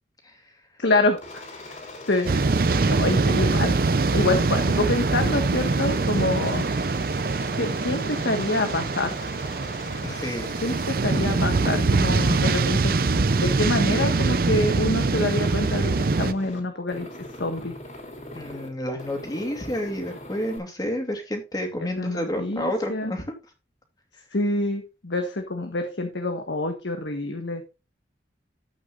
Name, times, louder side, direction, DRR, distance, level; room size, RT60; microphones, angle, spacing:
voice 1, 0.8-1.4 2.1-2.3 2.9-3.7 4.1-6.7 7.6-9.1 10.6-12.9 13.3-17.1 17.4-17.8 21.8-23.1 24.3-27.6, left 2 dB, 85° left, 5 dB, 1.6 m, -26 dB
Aircraft, 1.2-12.6 13.0-14.7 15.0-16.6 16.9-18.7 19.0-20.6, left 1 dB, 40° left, 3.3 m, -41 dB
sound 1, 2.3-16.3, right 3 dB, 55° right, 0.5 m, -23 dB
voice 2, 10.0-10.5 18.3-23.3, equal, 20° left, 3 dB, 2.7 m, -30 dB
13.0 x 8.6 x 2.5 m, 0.29 s
head